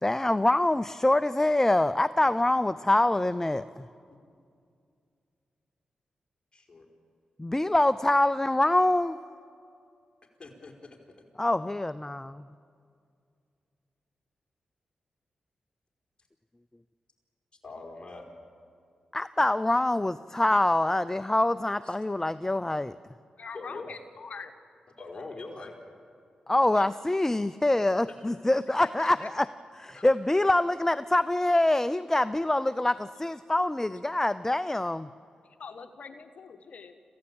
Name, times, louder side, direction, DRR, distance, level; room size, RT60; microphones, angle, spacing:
voice 1, 0.0-3.9 7.4-9.2 11.4-12.4 19.1-23.0 26.5-29.5 29.8-35.1, left 1 dB, 15° left, 15 dB, 0.5 m, -25 dB
voice 2, 6.5-6.8 10.4-10.7 17.6-18.3 21.8-21.9 23.5-23.9 25.0-25.7 29.9-30.1, left 3 dB, 35° left, 1 dB, 4.9 m, -42 dB
sound 1, 8.6-10.9, left 1 dB, 55° right, 3.3 m, -59 dB
voice 3, 23.4-24.5 26.7-26.9 28.8-29.3 35.4-37.0, left 5 dB, 65° left, 8 dB, 1.2 m, -43 dB
27.0 x 15.5 x 8.7 m, 2.4 s
cardioid pair, 50°, 3 cm